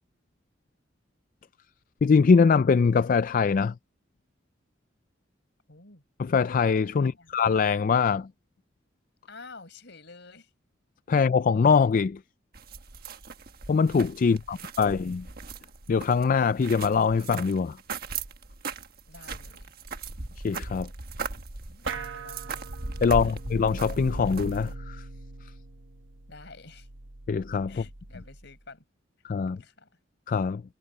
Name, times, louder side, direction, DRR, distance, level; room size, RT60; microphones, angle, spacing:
voice 1, 2.0-3.7 6.2-8.3 11.1-12.2 13.7-15.3 15.9-17.8 20.4-20.9 23.0-25.0 27.3-27.8 29.2-29.6 30.3-30.6, left 5 dB, 45° left, 0.4 m, -23 dB
voice 2, 5.7-6.0 7.0-7.3 9.3-10.5 14.2-14.9 19.1-19.7 21.7-22.7 23.1-23.3 26.3-26.9 27.7-28.8 29.5-30.0, left 3 dB, 65° left, 5.0 m, -50 dB
sound 1, 12.5-24.7, right 4 dB, 55° right, 1.4 m, -38 dB
sound 2, 21.9-28.6, right 2 dB, 80° right, 1.5 m, -40 dB
head